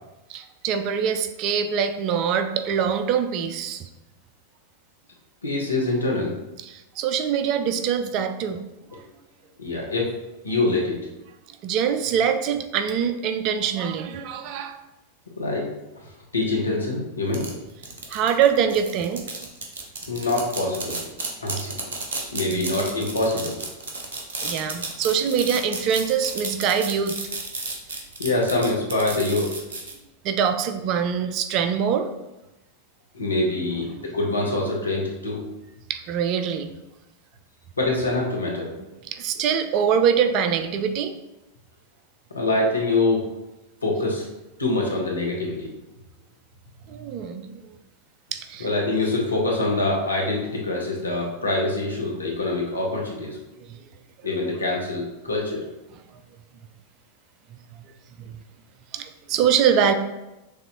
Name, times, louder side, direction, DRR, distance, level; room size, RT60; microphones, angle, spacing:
voice 1, 0.3-3.9 6.6-8.6 8.9-9.0 11.5-14.8 18.1-19.4 22.5-22.7 24.4-27.2 30.2-32.1 33.8-34.1 35.9-36.7 39.1-41.2 46.9-47.6 48.3-48.7 53.6-53.8 55.9-56.0 57.7-57.8 58.2-58.4 58.9-59.9, right 7 dB, 40° right, 8 dB, 0.4 m, -24 dB
voice 2, 5.4-6.3 9.6-10.2 10.4-11.0 15.4-15.7 16.0-17.6 20.1-21.0 21.4-21.7 22.3-23.6 28.2-29.6 33.1-35.5 37.8-38.7 42.3-43.3 43.8-44.3 44.6-45.7 48.6-53.4 54.2-55.6, left 2 dB, 80° left, -2 dB, 1.1 m, -25 dB
sound 1, 17.3-29.9, right 3 dB, 65° right, 0.9 m, -32 dB
6.5 x 2.6 x 3.0 m, 0.99 s
figure-of-eight pair, 90°, 0 cm